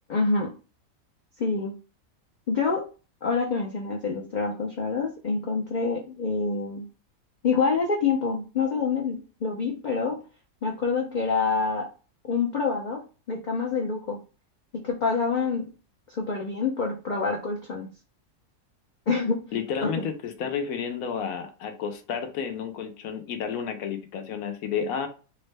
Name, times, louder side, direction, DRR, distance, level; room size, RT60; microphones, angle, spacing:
voice 1, 0.1-0.5 1.4-1.8 2.5-2.8 3.2-6.8 7.4-10.2 10.6-11.9 12.2-13.0 13.3-14.2 14.8-15.6 16.1-17.9 19.1-19.4 19.8-20.0, left 4 dB, 55° left, 0.5 m, -26 dB
voice 2, 19.5-25.1, left 7 dB, 80° left, 1.1 m, -31 dB
3.7 x 2.1 x 3.2 m
omnidirectional pair, 1.5 m